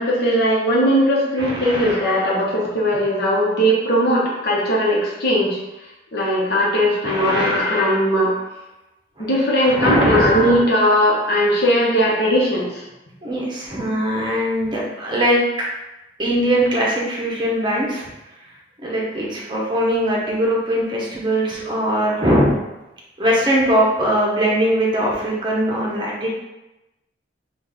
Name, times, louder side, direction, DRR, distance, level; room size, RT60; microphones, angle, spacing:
voice 1, 0.0-5.6 6.1-8.3 9.2-12.8, equal, 55° left, -4 dB, 1.0 m, -18 dB
voice 2, 1.4-2.0 7.0-7.7 9.2-9.3 9.6-10.5 13.2-15.7 16.2-18.1 18.8-22.5 23.2-26.3, equal, 25° right, -3 dB, 0.8 m, -21 dB
4.1 x 2.4 x 3.4 m, 0.98 s
head